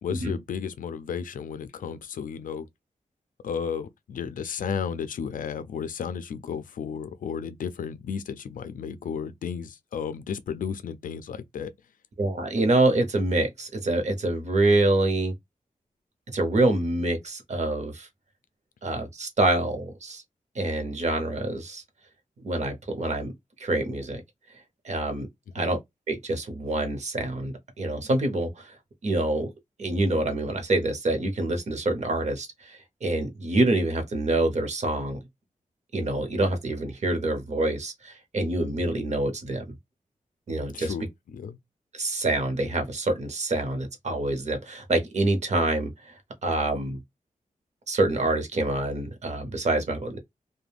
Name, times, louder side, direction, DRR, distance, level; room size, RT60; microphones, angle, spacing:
voice 1, 0.0-2.7 3.4-11.7 25.6-25.7 40.7-41.6, left 7 dB, 80° left, 0.4 m, -33 dB
voice 2, 12.2-15.3 16.3-18.1 18.8-20.2 20.5-21.8 22.4-23.3 23.6-24.2 24.8-25.3 25.5-25.8 26.1-28.8 29.0-29.5 29.8-35.2 35.9-39.6 40.5-40.9 41.9-46.1 46.4-47.0 47.9-50.2, right 2 dB, 55° right, 0.8 m, -26 dB
2.4 x 2.1 x 3.3 m
wide cardioid pair, 135°, 14 cm